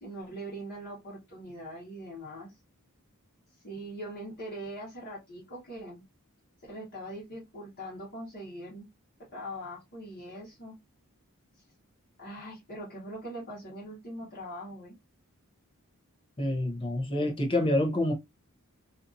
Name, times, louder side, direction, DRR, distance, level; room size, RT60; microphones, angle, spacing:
voice 1, 0.0-2.5 3.6-6.0 6.6-8.9 9.3-10.7 12.2-15.0, right 1 dB, 45° left, 1.1 m, -41 dB
voice 2, 16.4-18.1, left 1 dB, 25° left, 0.7 m, -27 dB
2.7 x 2.4 x 2.6 m
head